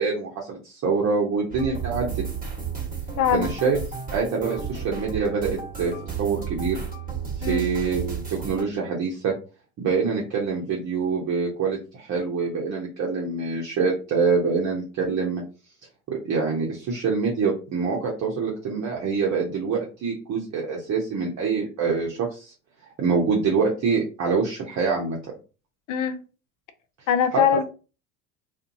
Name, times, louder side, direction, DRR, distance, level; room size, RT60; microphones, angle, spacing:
voice 1, 0.0-2.2 3.3-3.8 4.1-6.8 7.4-9.3 9.8-15.4 16.1-22.5 23.0-25.2, right 5 dB, 35° right, 0.9 m, -25 dB
sound 1, 1.5-8.6, right 6 dB, 20° right, 1.4 m, -32 dB
voice 2, 3.2-3.5 7.4-7.7 25.9-26.2 27.1-27.7, left 8 dB, 45° left, 0.5 m, -22 dB
2.5 x 2.5 x 2.6 m
hypercardioid pair, 75°, 46 cm